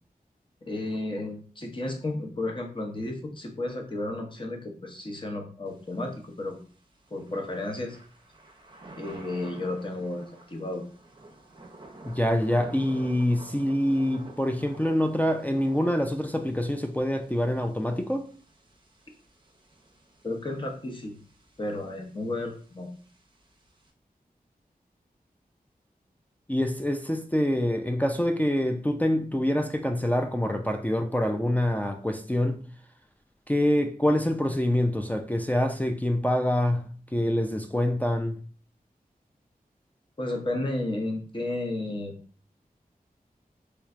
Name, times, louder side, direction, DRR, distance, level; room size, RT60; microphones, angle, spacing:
voice 1, 0.6-6.6 7.1-8.0 9.0-10.8 20.2-21.2 21.6-22.9 40.2-42.2, left 2 dB, 30° left, 0.8 m, -33 dB
Thunder / Rain, 5.7-23.9, right 2 dB, 30° right, 0.7 m, -51 dB
voice 2, 12.0-18.3 26.5-32.6 33.5-38.4, left 1 dB, 10° left, 0.3 m, -26 dB
3.3 x 3.1 x 2.4 m
wide cardioid pair, 90°, 16 cm